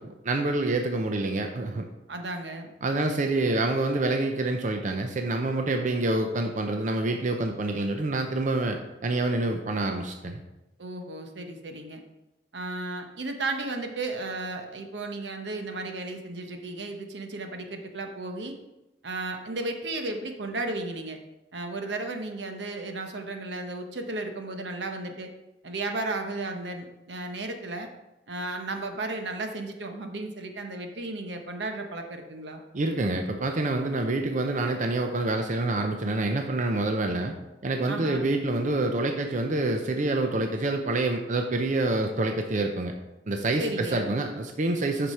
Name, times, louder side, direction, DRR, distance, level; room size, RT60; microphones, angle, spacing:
voice 1, 0.0-1.8 2.8-10.4 32.7-37.3 37.6-42.9 43.3-45.1, right 2 dB, 45° right, 4 dB, 0.6 m, -27 dB
voice 2, 2.1-2.7 10.8-12.0 12.5-18.6 19.0-21.2 21.5-25.3 25.6-27.9 28.3-32.6 37.9-38.3 43.6-44.2, right 2 dB, 80° right, 4 dB, 1.0 m, -34 dB
8.1 x 6.0 x 4.2 m, 0.97 s
head